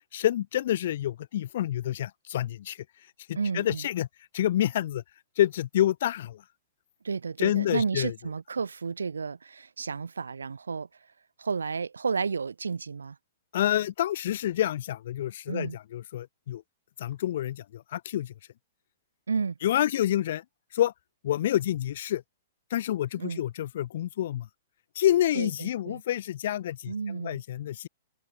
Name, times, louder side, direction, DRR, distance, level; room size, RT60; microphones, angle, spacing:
voice 1, 0.1-2.8 3.3-4.1 4.3-5.0 5.4-6.4 7.4-8.1 13.5-16.6 17.0-18.3 19.6-20.4 20.7-20.9 21.2-22.2 22.7-24.5 25.0-27.9, left 12 dB, 60° left, 0.6 m, -28 dB
voice 2, 3.4-3.9 7.0-10.9 11.4-13.2 15.5-15.8 19.3-19.6 23.2-23.4 25.3-26.0 26.9-27.4, right 5 dB, 80° right, 3.8 m, -32 dB
figure-of-eight pair, 115°, 0 cm